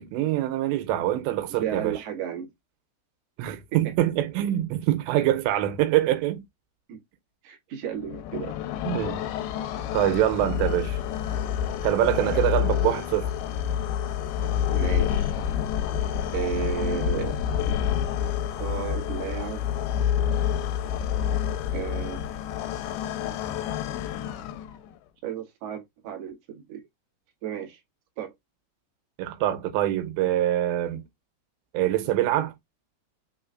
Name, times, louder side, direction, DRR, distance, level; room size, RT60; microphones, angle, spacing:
voice 1, 0.0-1.9 3.4-6.4 8.9-9.2 9.9-11.0 11.8-13.3 29.2-31.1 31.7-32.5, right 13 dB, 90° right, 3.0 m, -24 dB
voice 2, 1.5-2.5 6.9-7.0 7.4-8.6 12.2-12.5 14.7-15.3 16.3-17.4 18.6-19.6 21.7-22.3 25.2-26.9 27.4-27.8 28.2-28.3, right 10 dB, 60° right, 1.7 m, -33 dB
sound 1, 7.9-24.9, left 9 dB, 80° left, 2.3 m, -28 dB
6.3 x 3.1 x 2.4 m
omnidirectional pair, 5.1 m